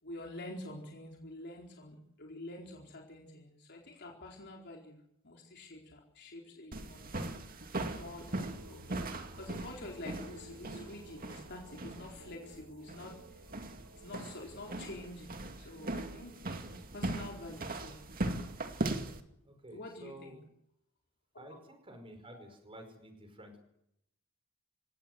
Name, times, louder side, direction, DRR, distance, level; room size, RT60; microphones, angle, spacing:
voice 1, 0.0-5.0 5.2-7.4 7.9-13.4 13.9-16.5 16.9-18.0 19.7-20.4 21.3-21.6 22.3-22.4, left 1 dB, 55° left, 0 dB, 4.3 m, -48 dB
sound 1, 6.7-19.2, right 2 dB, 45° right, 2.3 m, -40 dB
sound 2, 7.9-15.4, right 1 dB, 80° right, 7.3 m, -56 dB
voice 2, 19.4-20.4 21.4-23.6, right 1 dB, 25° right, 6 dB, 5.1 m, -51 dB
29.0 x 17.5 x 7.9 m, 0.77 s
head